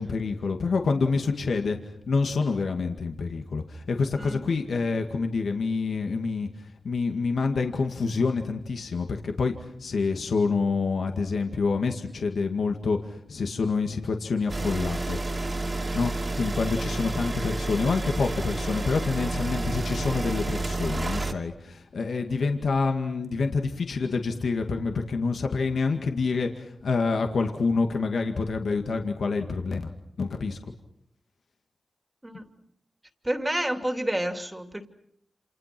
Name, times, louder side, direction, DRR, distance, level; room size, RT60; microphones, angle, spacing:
voice 1, 0.0-1.8 2.1-6.5 6.8-9.5 9.8-13.0 13.3-15.2 15.9-29.9 30.2-30.6, left 4 dB, 80° left, 4 dB, 2.0 m, -27 dB
sound 1, 14.5-21.3, right 2 dB, 35° right, 3.0 m, -30 dB
voice 2, 33.2-34.9, right 1 dB, 15° right, 6 dB, 2.8 m, -29 dB
28.5 x 28.0 x 6.1 m, 0.72 s
cardioid pair, 60°, 0 cm